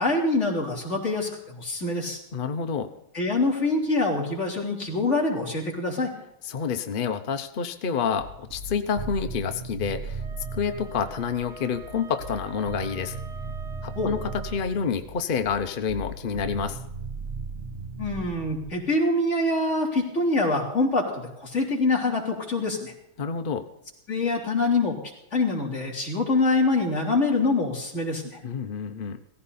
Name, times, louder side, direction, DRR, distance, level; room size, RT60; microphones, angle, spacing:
voice 1, 0.0-2.2 3.1-6.1 14.0-14.1 18.0-22.9 24.1-25.0 25.3-28.4, left 2 dB, 35° left, -2 dB, 3.9 m, -25 dB
voice 2, 2.3-2.9 6.4-10.2 10.5-13.1 13.8-16.8 23.2-23.6 28.4-29.2, left 6 dB, 65° left, 8 dB, 0.5 m, -28 dB
sound 1, 8.2-18.7, right 3 dB, 40° right, 1.1 m, -37 dB
Wind instrument woodwind instrument, 10.2-14.7, right 2 dB, 75° right, 4.3 m, -46 dB
17.5 x 15.5 x 4.2 m, 0.83 s
omnidirectional pair, 2.2 m